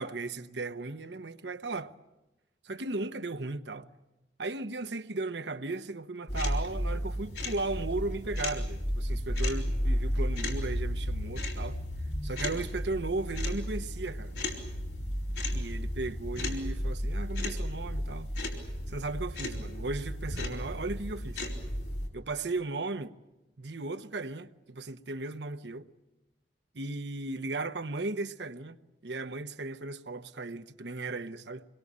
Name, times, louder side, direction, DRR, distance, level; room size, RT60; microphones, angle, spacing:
voice 1, 0.0-1.9 2.6-3.9 4.4-11.8 12.2-14.3 15.5-18.3 18.9-21.5 22.1-23.1 23.6-25.9 26.7-28.8 29.0-31.7, right 2 dB, 75° right, 1.0 m, -36 dB
sound 1, 6.3-22.1, equal, 75° left, 4.5 m, -33 dB
26.0 x 22.0 x 8.8 m
head